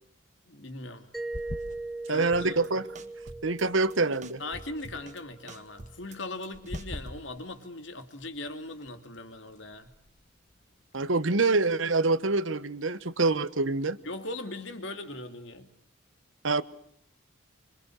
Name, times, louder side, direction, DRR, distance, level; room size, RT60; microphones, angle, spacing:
voice 1, 0.5-1.1 2.1-2.5 4.4-9.9 14.0-15.7, left 2 dB, 65° left, 2.7 m, -39 dB
sound 1, 1.1-11.4, left 1 dB, 40° left, 1.7 m, -47 dB
Mallet percussion, 1.1-5.7, right 2 dB, ahead, 1.0 m, -40 dB
voice 2, 2.1-2.9 3.4-4.4 10.9-14.0 16.4-16.6, right 3 dB, 75° right, 1.2 m, -26 dB
sound 2, 2.3-2.7 3.0-3.6 3.9-5.2 5.5-7.4, right 2 dB, 35° right, 1.8 m, -47 dB
25.5 x 25.0 x 6.4 m
head